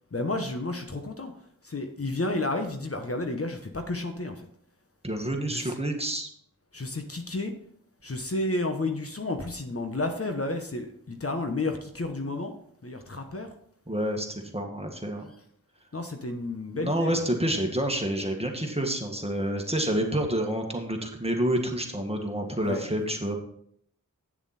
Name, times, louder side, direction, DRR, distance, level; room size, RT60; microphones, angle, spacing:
voice 1, 0.1-1.3 1.6-4.4 5.5-5.7 6.7-7.5 8.0-12.5 12.8-13.5 15.9-17.1 22.6-22.8, left 2 dB, 45° left, 5 dB, 1.1 m, -31 dB
voice 2, 5.0-6.3 13.9-15.3 16.7-23.4, right 1 dB, 20° right, 2 dB, 1.8 m, -28 dB
8.8 x 7.0 x 4.2 m, 0.67 s
wide cardioid pair, 45°, 33 cm